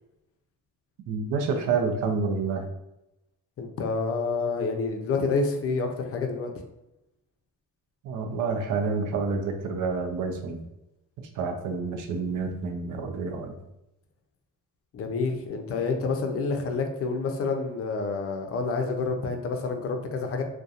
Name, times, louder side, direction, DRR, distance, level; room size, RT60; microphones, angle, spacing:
voice 1, 1.1-2.6 8.0-10.6 11.2-13.6, right 4 dB, 70° right, 5 dB, 0.6 m, -28 dB
voice 2, 3.6-6.5 14.9-20.4, left 4 dB, 45° left, 4 dB, 0.5 m, -28 dB
2.7 x 2.2 x 2.4 m, 0.89 s
cardioid pair, 115°, 32 cm